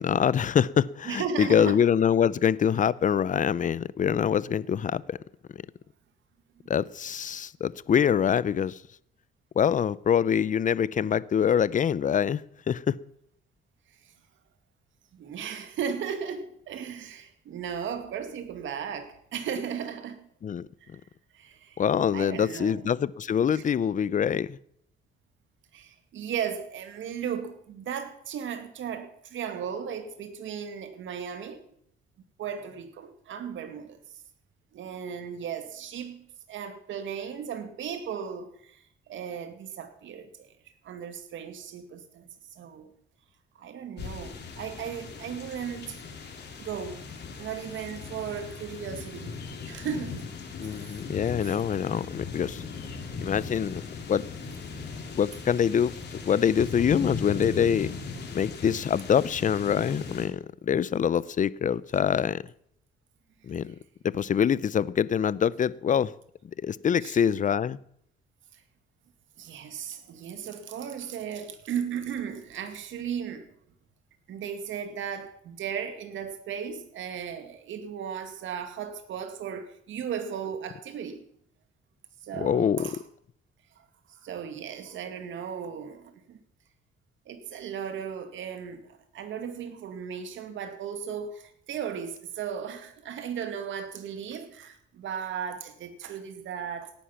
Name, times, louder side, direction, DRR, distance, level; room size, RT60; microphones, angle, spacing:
voice 1, 0.0-5.2 6.7-8.8 9.6-12.4 12.7-13.0 20.4-20.7 21.8-24.6 50.6-52.6 53.2-54.2 55.2-55.9 56.2-57.9 58.3-62.4 63.4-63.7 64.0-66.1 66.6-67.8 82.4-82.9, left 8 dB, 40° left, 0.6 m, -25 dB
voice 2, 1.0-1.8 15.1-20.3 20.8-20.9 21.3-21.8 22.1-22.9 23.5-23.6 25.7-31.6 32.4-34.0 34.7-38.8 39.1-40.5 40.8-42.9 43.6-46.0 46.6-47.1 47.4-49.4 49.7-50.2 51.4-51.6 67.0-67.2 68.5-68.6 69.4-73.5 74.3-81.2 82.2-83.0 83.8-86.4 87.3-96.9, right 7 dB, 75° right, 2.3 m, -36 dB
sound 1, 44.0-60.3, left 5 dB, 60° left, 3.3 m, -38 dB
17.5 x 10.0 x 5.9 m
cardioid pair, 90°, 20 cm